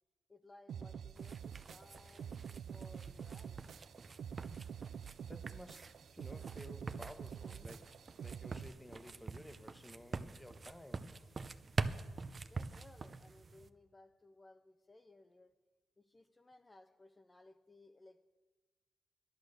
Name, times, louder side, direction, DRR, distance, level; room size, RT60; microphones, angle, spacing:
voice 1, 0.3-3.6 4.5-4.6 12.5-15.5 16.0-18.2, left 2 dB, 25° left, 4 dB, 0.7 m, -61 dB
sound 1, 0.7-8.7, right 8 dB, 70° right, 0.3 m, -47 dB
sound 2, 1.2-13.7, right 4 dB, 40° right, 0.7 m, -45 dB
voice 2, 5.2-7.9 8.2-11.3, left 1 dB, 10° left, 9 dB, 1.1 m, -54 dB
11.0 x 11.0 x 6.5 m, 1.2 s
cardioid pair, 75°, 0 cm